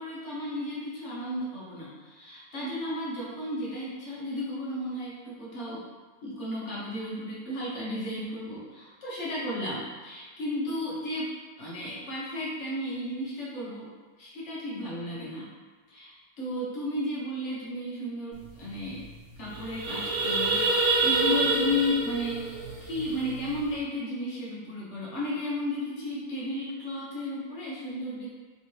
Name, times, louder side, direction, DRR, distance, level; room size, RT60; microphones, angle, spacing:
voice 1, 0.0-5.9 6.2-11.3 11.6-13.9 14.2-15.5 15.9-19.0 19.4-28.3, left 1 dB, 55° left, -7 dB, 1.3 m, -33 dB
sound 1, 18.4-18.5 18.8-19.0 19.4-23.7, right 3 dB, 80° right, 1.3 m, -27 dB
3.5 x 3.1 x 2.9 m, 1.4 s
omnidirectional pair, 1.6 m